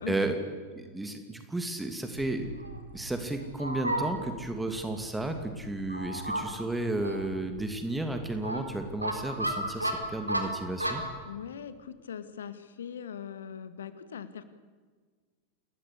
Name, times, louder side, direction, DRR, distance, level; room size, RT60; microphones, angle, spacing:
voice 1, 0.1-0.4 0.7-2.5 2.9-11.0, right 2 dB, 5° right, 6 dB, 2.7 m, -33 dB
Fowl, 2.1-11.2, right 1 dB, 85° right, 3.9 m, -35 dB
voice 2, 11.3-14.5, left 8 dB, 65° left, 12 dB, 2.1 m, -41 dB
28.5 x 21.5 x 8.5 m, 1.5 s
figure-of-eight pair, 90°, 0 cm